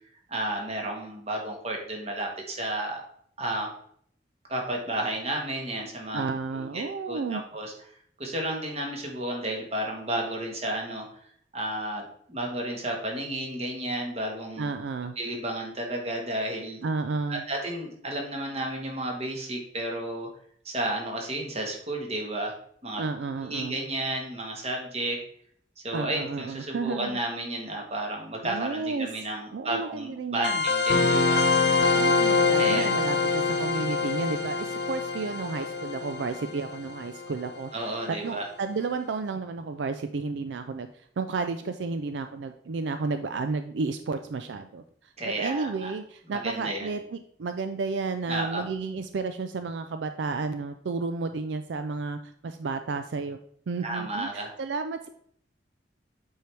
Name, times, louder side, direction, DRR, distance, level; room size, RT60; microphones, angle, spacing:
voice 1, 0.3-3.1 3.4-3.7 4.5-6.2 6.5-7.7 8.2-11.1 11.5-12.0 12.3-14.7 15.2-16.8 17.3-20.3 20.6-22.5 22.8-23.0 23.4-25.2 25.8-31.4 32.6-33.0 37.7-38.5 45.2-45.9 46.3-46.9 48.3-48.6 53.8-54.5, right 1 dB, 35° right, 1 dB, 1.5 m, -32 dB
voice 2, 6.1-7.4 14.6-15.1 16.8-17.4 23.0-23.7 25.9-27.2 28.4-29.1 29.5-30.6 31.9-37.7 38.1-40.9 41.2-45.1 45.4-53.4 53.7-55.1, right 4 dB, 80° right, 9 dB, 0.4 m, -32 dB
sound 1, 30.4-37.5, left 4 dB, 70° left, 1.1 m, -25 dB
7.6 x 4.6 x 3.4 m, 0.63 s
head